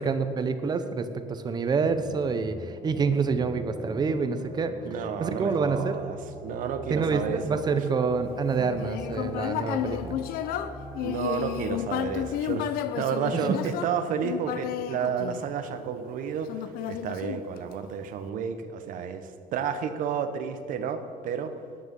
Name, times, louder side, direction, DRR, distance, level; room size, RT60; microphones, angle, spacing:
voice 1, 0.0-4.7 5.2-5.9 6.9-10.2 13.3-13.4, right 5 dB, 25° right, 10 dB, 0.7 m, -27 dB
sound 1, 1.8-12.3, equal, 5° left, 3.2 m, -43 dB
voice 2, 4.8-7.9 11.0-21.5, right 7 dB, 60° right, 9 dB, 1.0 m, -31 dB
Human voice, 8.5-15.9 16.5-17.9, left 11 dB, 70° left, 0.6 m, -32 dB
12.5 x 9.7 x 5.3 m, 2.2 s
cardioid pair, 150°, 16 cm